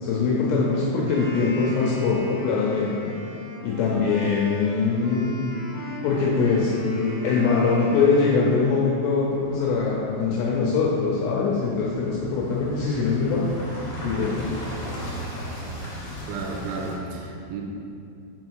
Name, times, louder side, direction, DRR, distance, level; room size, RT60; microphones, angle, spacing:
voice 1, 0.0-3.1 3.6-5.4 6.0-13.6 14.0-14.5, left 4 dB, 80° left, -4 dB, 2.5 m, -23 dB
Wind instrument woodwind instrument, 1.0-9.0, left 1 dB, 65° right, 2.3 m, -38 dB
sound 1, 9.2-16.9, equal, 65° left, 2.0 m, -37 dB
voice 2, 16.3-17.6, right 4 dB, 85° right, 0 dB, 3.1 m, -32 dB
5.7 x 5.4 x 4.6 m, 2.6 s
omnidirectional pair, 5.5 m